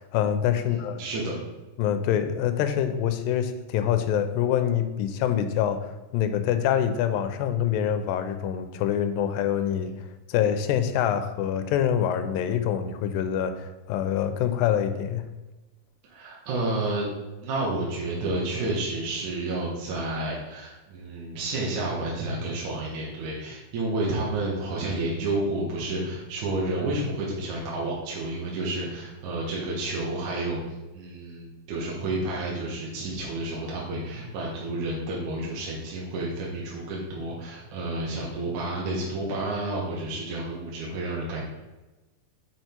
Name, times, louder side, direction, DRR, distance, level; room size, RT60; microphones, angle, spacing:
voice 1, 0.0-1.0 1.8-15.3, left 9 dB, 85° left, 9 dB, 2.4 m, -25 dB
voice 2, 0.6-1.4 16.0-17.1 17.4-30.6 30.9-41.4, right 2 dB, 65° right, -4 dB, 2.6 m, -30 dB
6.1 x 5.6 x 4.4 m, 1.1 s
omnidirectional pair, 4.0 m